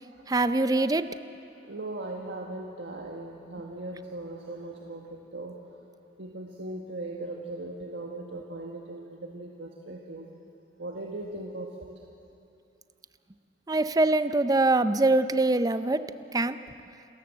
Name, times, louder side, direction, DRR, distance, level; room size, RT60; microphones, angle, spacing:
voice 1, 0.3-1.0 13.7-16.0 16.3-16.6, right 2 dB, 20° right, 12 dB, 0.5 m, -23 dB
voice 2, 1.6-5.6 6.2-10.3 10.8-11.9, right 2 dB, 85° right, 0 dB, 1.6 m, -39 dB
28.5 x 13.5 x 7.9 m, 2.6 s
head